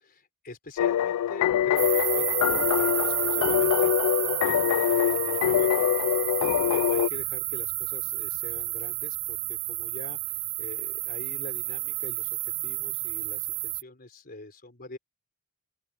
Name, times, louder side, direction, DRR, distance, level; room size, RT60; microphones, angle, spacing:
voice 1, 0.1-5.9 6.4-15.0, left 2 dB, 45° left, 4.1 m, -44 dB
sound 1, 0.8-7.1, left 10 dB, 90° left, 0.3 m, -24 dB
sound 2, 1.8-13.8, right 20 dB, 45° right, 0.3 m, -31 dB
open air
head